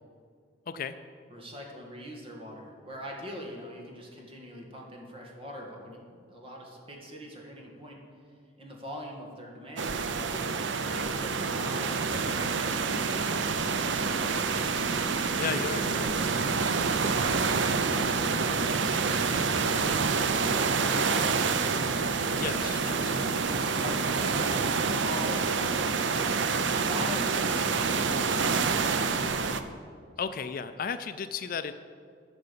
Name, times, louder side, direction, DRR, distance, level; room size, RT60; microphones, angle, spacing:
voice 1, 1.3-8.0 8.6-14.8 16.6-21.4 22.2-22.7 23.6-29.4, equal, 30° right, -1 dB, 2.0 m, -43 dB
sound 1, 9.8-29.6, right 4 dB, 65° right, 0.6 m, -27 dB
voice 2, 15.4-16.2 22.4-23.2 30.2-31.7, left 6 dB, 45° left, 11 dB, 0.4 m, -34 dB
12.0 x 6.7 x 6.9 m, 2.2 s
head